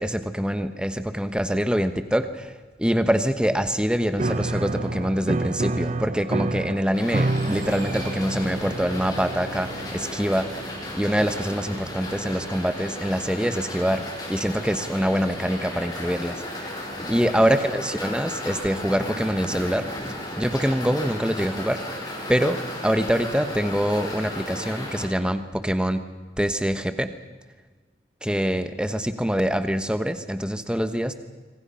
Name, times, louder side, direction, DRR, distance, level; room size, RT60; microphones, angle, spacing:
voice 1, 0.0-10.5 10.9-16.4 17.1-19.9 20.4-21.8 22.3-26.0 26.4-27.1 28.2-31.1, equal, 5° right, 10 dB, 1.2 m, -25 dB
Piano, 4.2-12.6, right 2 dB, 40° right, 0.7 m, -30 dB
sound 1, 6.9-25.0, left 1 dB, 20° left, 5.2 m, -35 dB
26.5 x 25.0 x 5.7 m, 1.4 s
head